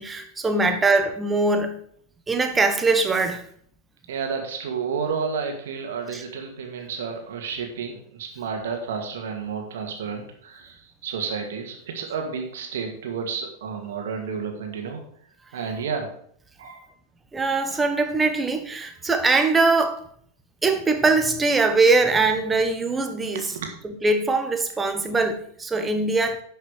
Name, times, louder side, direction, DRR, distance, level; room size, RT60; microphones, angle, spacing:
voice 1, 0.0-1.8 2.3-3.4 6.1-6.2 17.3-20.0 20.6-23.5 23.8-26.4, right 3 dB, 15° right, 1.3 m, -22 dB
voice 2, 4.1-15.0 15.5-16.1 16.6-16.9 23.5-23.7, right 6 dB, 60° right, 2.2 m, -31 dB
11.0 x 5.8 x 5.0 m
figure-of-eight pair, 90°, 0 cm